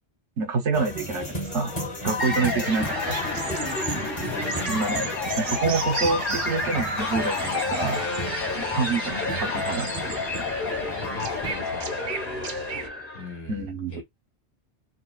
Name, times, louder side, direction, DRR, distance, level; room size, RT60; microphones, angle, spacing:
voice 1, 0.4-1.3 1.5-1.7 2.0-3.2 4.7-5.0 5.4-8.0 8.7-10.1 13.5-14.0, right 4 dB, 90° right, 1.1 m, -27 dB
sound 1, 0.7-11.5, equal, 30° left, 0.9 m, -35 dB
sound 2, 2.2-13.3, left 3 dB, 50° left, 1.6 m, -30 dB
sound 3, 2.4-12.9, right 6 dB, 60° right, 0.5 m, -37 dB
voice 2, 4.3-4.8 11.0-11.9 13.1-14.0, left 3 dB, 65° left, 1.6 m, -40 dB
4.2 x 2.0 x 2.3 m
omnidirectional pair, 1.2 m